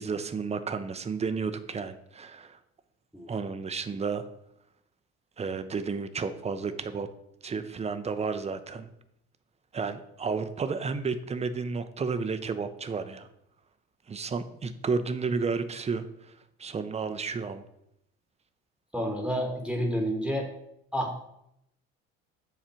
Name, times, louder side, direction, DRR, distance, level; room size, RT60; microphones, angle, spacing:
voice 1, 0.0-2.6 3.3-4.2 5.4-7.1 7.4-8.9 9.7-13.3 14.1-16.1 16.6-17.6, right 5 dB, 20° right, 10 dB, 0.5 m, -32 dB
voice 2, 18.9-20.5 20.9-21.2, equal, 5° right, 1 dB, 1.1 m, -29 dB
7.4 x 2.5 x 5.6 m, 0.78 s
hypercardioid pair, 70°, 30 cm